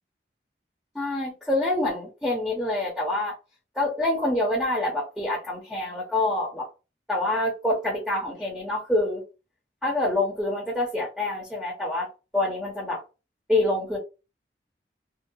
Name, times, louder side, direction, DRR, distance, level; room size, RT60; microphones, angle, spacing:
voice 1, 0.9-3.4 3.8-6.7 7.1-9.2 9.8-12.1 12.3-13.0 13.5-14.0, left 1 dB, ahead, 0.7 m, -26 dB
2.6 x 2.3 x 2.3 m
head